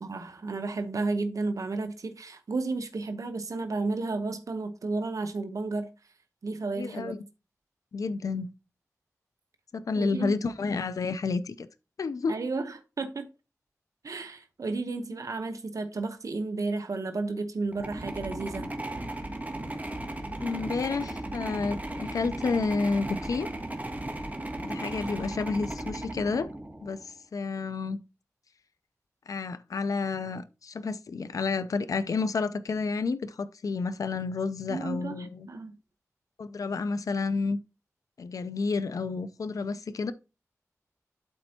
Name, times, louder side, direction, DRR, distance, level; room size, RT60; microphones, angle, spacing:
voice 1, 0.0-5.9 6.4-7.1 10.0-10.3 12.3-13.3 14.0-18.7 34.7-35.7, right 3 dB, 75° right, 0.9 m, -32 dB
voice 2, 6.8-7.2 7.9-8.5 9.7-11.7 12.0-12.4 20.4-23.5 24.6-26.5 26.8-28.0 29.3-35.5 36.4-37.6 38.2-40.1, left 4 dB, 85° left, 0.4 m, -30 dB
sound 1, 17.7-27.1, right 1 dB, 30° right, 1.5 m, -36 dB
12.0 x 4.3 x 2.8 m
wide cardioid pair, 60°, 6 cm